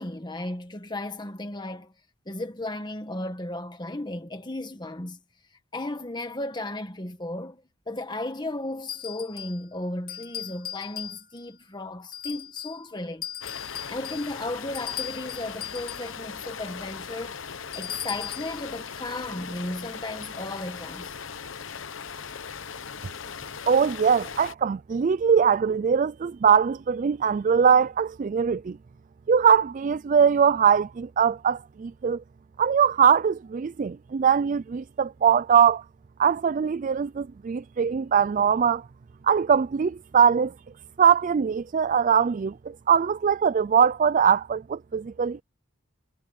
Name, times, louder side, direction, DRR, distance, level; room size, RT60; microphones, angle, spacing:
voice 1, 0.0-1.9 2.2-5.2 5.7-13.3 13.9-17.4 17.7-21.2, left 2 dB, 20° left, 1.6 m, -35 dB
sound 1, 8.9-9.6 10.1-11.5 12.1-12.8 13.2-16.2 17.7-18.6, left 10 dB, 45° left, 2.7 m, -38 dB
sound 2, 13.4-24.5, left 6 dB, 65° left, 0.9 m, -39 dB
voice 2, 23.7-28.8 29.3-32.2 32.6-35.8 36.2-38.8 39.2-40.5 41.0-45.4, right 7 dB, 40° right, 0.3 m, -21 dB
head